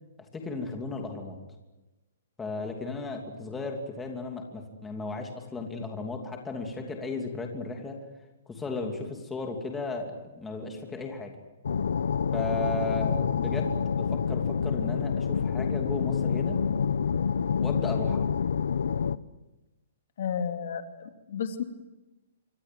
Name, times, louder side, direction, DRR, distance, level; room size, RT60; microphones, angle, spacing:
voice 1, 0.3-1.4 2.4-8.0 8.5-11.3 12.3-16.6 17.6-18.3, left 3 dB, 5° left, 2 dB, 2.9 m, -35 dB
sound 1, 11.6-19.2, left 6 dB, 90° left, 1.0 m, -27 dB
voice 2, 20.2-21.6, left 7 dB, 55° left, 5 dB, 3.1 m, -32 dB
26.5 x 25.0 x 7.7 m, 1.1 s
hypercardioid pair, 170°, 0 cm